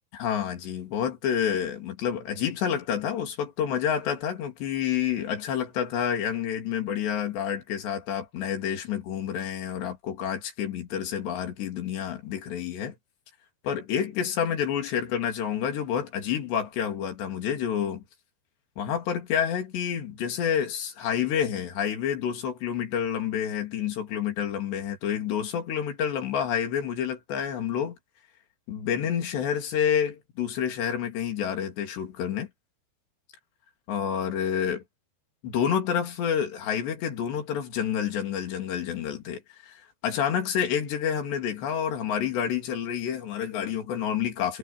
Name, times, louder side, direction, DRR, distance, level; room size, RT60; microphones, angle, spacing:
voice 1, 0.1-12.9 13.6-18.0 18.8-28.0 28.7-32.5 33.9-34.8 35.4-44.6, left 8 dB, 80° left, 5.1 m, -29 dB
omnidirectional pair, 4.8 m